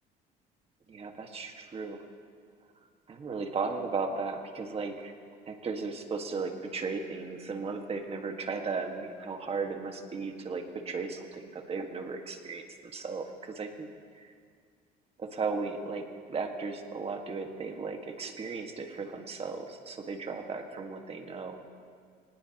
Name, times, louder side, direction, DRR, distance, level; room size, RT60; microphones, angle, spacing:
voice 1, 0.9-2.0 3.1-5.1 5.5-13.9 14.1-14.3 15.2-21.6, right 4 dB, 35° right, 4 dB, 1.7 m, -36 dB
24.0 x 19.0 x 3.0 m, 2.1 s
cardioid pair, 110°, 17 cm